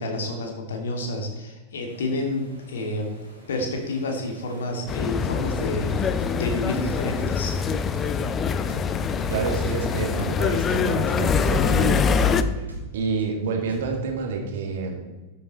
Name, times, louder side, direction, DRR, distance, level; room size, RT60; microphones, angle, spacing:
voice 1, 0.0-3.1 3.5-7.6, left 2 dB, 65° left, 2 dB, 2.4 m, -29 dB
Waves surf, 1.9-10.6, right 1 dB, 85° left, 3.8 m, -49 dB
sound 1, 4.9-12.4, left 6 dB, 25° left, 0.7 m, -24 dB
sound 2, 6.2-6.4 6.7-6.9 7.2-7.4 7.7-9.4 9.7-9.8 10.2-10.4 10.7-10.9 11.2-11.4 11.7-13.2 13.7-14.1, right 3 dB, 80° right, 2.3 m, -39 dB
voice 2, 9.3-12.7 12.9-15.0, right 4 dB, 55° right, 3 dB, 2.2 m, -28 dB
13.0 x 8.3 x 4.3 m, 1.2 s
figure-of-eight pair, 90°, 0 cm